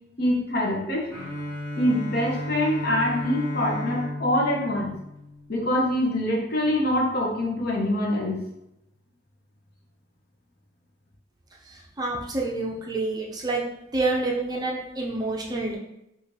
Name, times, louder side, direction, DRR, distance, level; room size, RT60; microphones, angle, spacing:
voice 1, 0.2-1.1 1.8-4.9 5.5-8.4, left 1 dB, 50° left, -1 dB, 0.8 m, -24 dB
Bowed string instrument, 1.1-5.9, left 2 dB, 25° left, 1.3 m, -34 dB
voice 2, 12.0-13.7 13.9-15.8, right 2 dB, 20° right, -2 dB, 0.5 m, -27 dB
4.9 x 2.5 x 2.7 m, 0.84 s
head